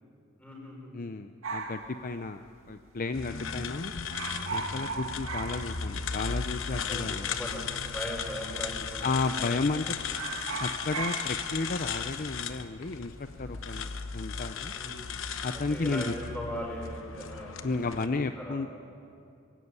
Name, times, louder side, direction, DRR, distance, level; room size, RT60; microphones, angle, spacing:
voice 1, 0.4-0.9 3.2-3.5 6.7-9.5 14.7-15.0 15.5-17.9 18.4-18.7, equal, 5° left, -2 dB, 5.5 m, -40 dB
voice 2, 0.9-2.4 2.7-3.9 4.5-7.3 9.0-10.0 10.6-14.7 15.4-16.1 17.6-18.7, left 3 dB, 45° left, 8 dB, 0.6 m, -33 dB
sound 1, 1.4-2.9 3.2-3.3 3.5-3.8 4.0-6.3 6.6-6.7 7.5-8.1 8.5-8.7 9.0-9.7 10.0-14.6 14.9-15.4, right 4 dB, 75° right, 2.3 m, -38 dB
sound 2, 3.1-18.1, left 6 dB, 70° left, 1.0 m, -36 dB
sound 3, 7.8-9.0 10.3-12.4, right 4 dB, 45° right, 1.8 m, -54 dB
22.0 x 16.5 x 9.7 m, 2.4 s
head